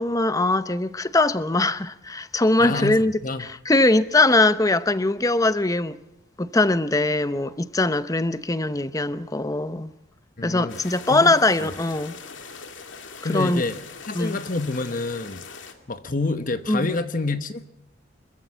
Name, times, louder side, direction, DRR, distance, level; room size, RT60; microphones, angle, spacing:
voice 1, 0.0-3.1 3.4-6.0 6.4-9.9 10.4-12.1 13.3-13.6 14.1-14.4 16.7-16.9, left 2 dB, 20° left, 0.8 m, -21 dB
voice 2, 2.6-3.4 10.4-10.8 11.1-11.3 11.6-11.7 13.2-13.8 14.0-15.4 15.9-17.7, left 3 dB, 45° left, 1.1 m, -28 dB
sound 1, 10.7-15.7, left 5 dB, 85° left, 2.3 m, -41 dB
25.5 x 15.0 x 7.4 m
head